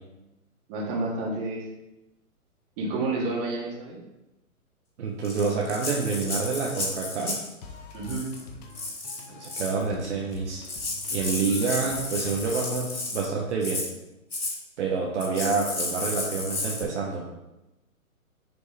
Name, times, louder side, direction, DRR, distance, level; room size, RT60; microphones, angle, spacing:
voice 1, 0.7-1.6 2.8-4.0 7.9-8.3, right 2 dB, 25° right, -3 dB, 2.2 m, -29 dB
voice 2, 5.0-7.4 9.3-10.7 11.1-13.8 14.8-17.2, right 4 dB, 50° right, -2 dB, 1.3 m, -28 dB
Rattle (instrument), 5.2-7.5 8.0-8.4 8.7-9.8 10.4-10.5 10.6-13.3 13.6-13.9 14.3-14.6 15.2-16.8, left 2 dB, 85° left, 2.2 m, -33 dB
sound 1, 7.6-12.6, left 4 dB, 30° left, 1.0 m, -46 dB
9.8 x 5.1 x 3.4 m, 0.97 s
figure-of-eight pair, 125°, 43 cm